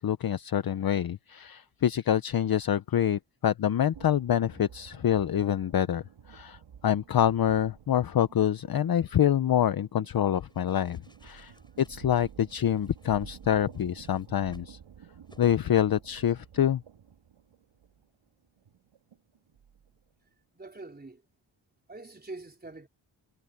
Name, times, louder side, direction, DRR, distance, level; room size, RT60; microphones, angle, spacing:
voice 1, 0.0-11.5 11.8-14.8 15.4-16.8, left 10 dB, 50° left, 0.7 m, -26 dB
sound 1, 3.9-20.1, right 8 dB, 85° right, 3.4 m, -52 dB
sound 2, 10.4-14.7 15.3-15.4 15.7-16.0, left 1 dB, 10° left, 7.3 m, -61 dB
voice 2, 11.3-11.8 20.5-21.2 21.9-22.9, right 2 dB, 20° right, 4.2 m, -45 dB
wide cardioid pair, 125°, 48 cm